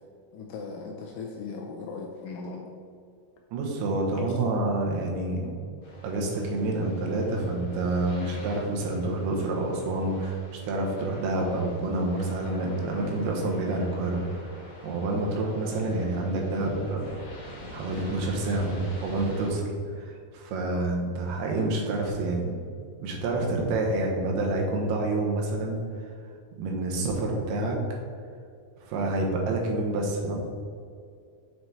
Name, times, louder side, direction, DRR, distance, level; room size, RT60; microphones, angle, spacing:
voice 1, 0.3-2.7 4.1-4.3, left 4 dB, 80° left, 1 dB, 2.0 m, -38 dB
voice 2, 3.5-5.5 6.0-14.2 14.8-17.0 17.7-19.7 20.0-22.6 23.0-25.8 26.6-27.8 28.8-30.4, right 2 dB, 90° right, 0 dB, 3.1 m, -28 dB
sound 1, 5.8-19.5, left 1 dB, 60° left, 0.8 m, -46 dB
7.6 x 4.6 x 4.1 m, 2.3 s
omnidirectional pair, 4.4 m